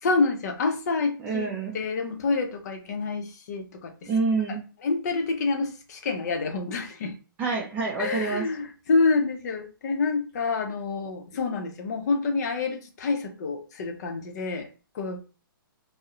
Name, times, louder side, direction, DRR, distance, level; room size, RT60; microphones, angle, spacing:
voice 1, 0.0-4.1 4.8-7.1 8.0-14.7 14.9-15.2, left 4 dB, 50° left, 5 dB, 0.5 m, -27 dB
voice 2, 1.2-1.8 4.1-4.6 7.4-8.4, right 4 dB, 15° right, -1 dB, 0.4 m, -27 dB
2.7 x 2.0 x 2.3 m, 0.34 s
hypercardioid pair, 155°, 12 cm